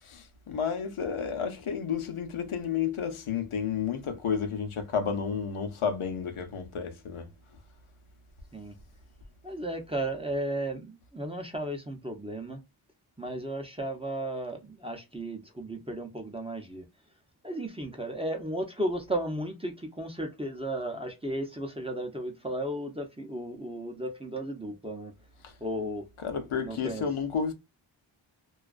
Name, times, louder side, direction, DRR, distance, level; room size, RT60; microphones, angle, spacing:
voice 1, 0.1-7.3 26.2-27.5, left 6 dB, 90° left, 0.7 m, -31 dB
voice 2, 9.4-12.6 13.2-16.8 17.4-25.1 25.6-26.1 26.6-27.1, right 1 dB, 10° right, 0.6 m, -34 dB
2.3 x 2.3 x 2.3 m
wide cardioid pair, 65°, 49 cm